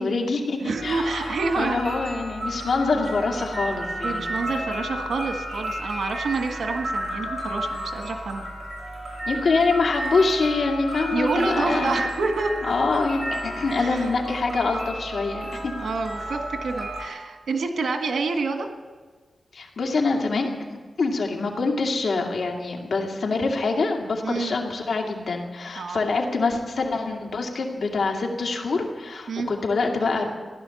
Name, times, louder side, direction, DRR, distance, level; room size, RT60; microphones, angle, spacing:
voice 1, 0.0-4.3 9.3-12.1 12.6-15.7 19.5-20.5 21.0-30.3, left 3 dB, 75° left, 1 dB, 2.3 m, -25 dB
voice 2, 0.6-1.8 4.0-8.5 11.1-12.5 13.8-14.0 15.8-18.7 24.2-24.5 25.8-26.0 29.3-29.5, right 3 dB, 85° right, 5 dB, 1.7 m, -27 dB
sound 1, 0.8-17.1, right 1 dB, 30° right, 5.8 m, -32 dB
16.0 x 11.5 x 7.1 m, 1.4 s
wide cardioid pair, 95°, 0 cm